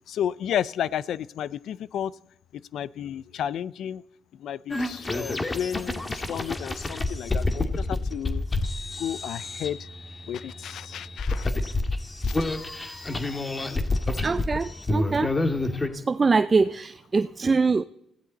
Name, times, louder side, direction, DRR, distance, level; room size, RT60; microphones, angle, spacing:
voice 1, 0.1-2.1 2.5-4.0 4.3-8.4 9.0-9.9 10.3-11.5 12.2-12.6, left 9 dB, 75° left, 0.5 m, -32 dB
sound 1, 4.7-15.9, left 2 dB, 25° left, 1.8 m, -29 dB
voice 2, 14.2-15.3 15.9-17.8, right 4 dB, 30° right, 0.5 m, -23 dB
21.0 x 15.5 x 4.1 m
cardioid pair, 90°, 0 cm